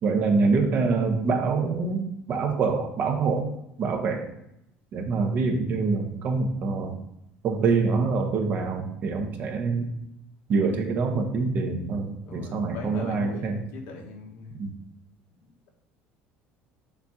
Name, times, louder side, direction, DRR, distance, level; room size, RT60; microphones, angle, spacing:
voice 1, 0.0-3.5 3.8-4.3 4.9-7.0 7.4-9.9 10.5-13.6 14.5-14.7, right 4 dB, 40° right, 4 dB, 0.9 m, -25 dB
voice 2, 12.2-14.6 15.4-15.7, left 4 dB, 75° left, 2 dB, 1.3 m, -41 dB
6.9 x 2.8 x 4.9 m, 0.80 s
cardioid pair, 155°, 4 cm